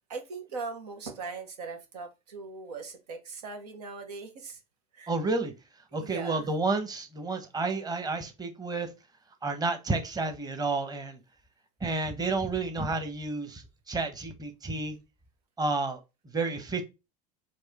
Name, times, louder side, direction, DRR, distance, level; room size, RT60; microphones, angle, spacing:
voice 1, 0.1-4.6 4.9-5.1 6.0-6.5, right 4 dB, 85° right, 1.1 m, -40 dB
voice 2, 5.1-5.5 5.9-8.9 9.4-11.2 11.8-15.0 15.6-16.0 16.3-16.8, right 3 dB, 20° right, 1.0 m, -30 dB
4.7 x 2.5 x 4.1 m
hypercardioid pair, 95°, 20 cm